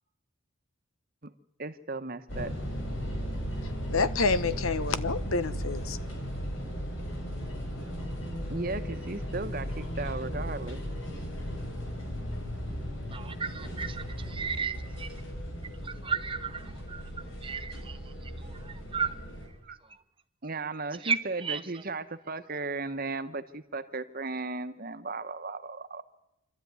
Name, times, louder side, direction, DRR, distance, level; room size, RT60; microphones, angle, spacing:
voice 1, 1.6-2.5 8.5-10.8 19.6-19.8 20.4-26.0, right 3 dB, 45° right, 1.1 m, -36 dB
sound 1, 2.3-19.5, equal, 70° left, 5.1 m, -36 dB
voice 2, 3.9-6.0, left 4 dB, 85° left, 1.1 m, -28 dB
voice 3, 13.1-15.1 15.8-17.1 17.4-19.2 21.0-21.6, right 6 dB, 25° right, 0.9 m, -34 dB
26.5 x 13.0 x 9.5 m
head